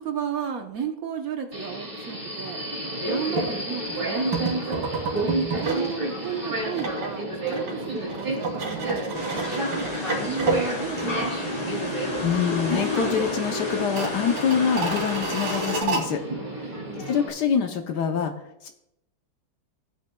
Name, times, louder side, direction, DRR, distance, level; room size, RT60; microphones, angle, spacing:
voice 1, 0.0-4.9 5.6-9.7 10.2-12.1 16.8-17.1, right 7 dB, 55° right, 5 dB, 1.1 m, -34 dB
Subway metro underground, 1.5-17.3, right 1 dB, 25° right, 2.8 m, -31 dB
sound 1, 3.3-3.5 4.3-5.9 6.2-11.5 11.8-11.9 12.4-12.9 13.2-13.3 13.8-16.0, right 3 dB, 75° right, 2.7 m, -30 dB
sound 2, 9.1-15.8, left 2 dB, 15° left, 4.0 m, -31 dB
voice 2, 12.2-16.2 16.5-16.7 17.0-18.3 18.6-18.7, left 7 dB, 65° left, 5 dB, 1.1 m, -25 dB
14.5 x 8.8 x 2.2 m, 0.82 s
omnidirectional pair, 2.3 m